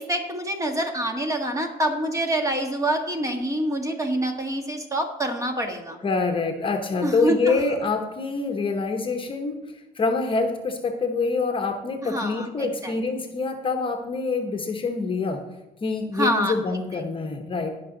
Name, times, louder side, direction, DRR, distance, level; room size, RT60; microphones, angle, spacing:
voice 1, 0.0-6.0 7.0-7.6 12.0-13.0 16.1-16.5 16.9-17.0, right 1 dB, 20° right, 4 dB, 1.7 m, -26 dB
voice 2, 6.0-9.7 9.9-15.4 15.8-17.7, left 4 dB, 30° left, 5 dB, 1.1 m, -26 dB
18.0 x 6.1 x 4.0 m, 1.0 s
cardioid pair, 110°, 17 cm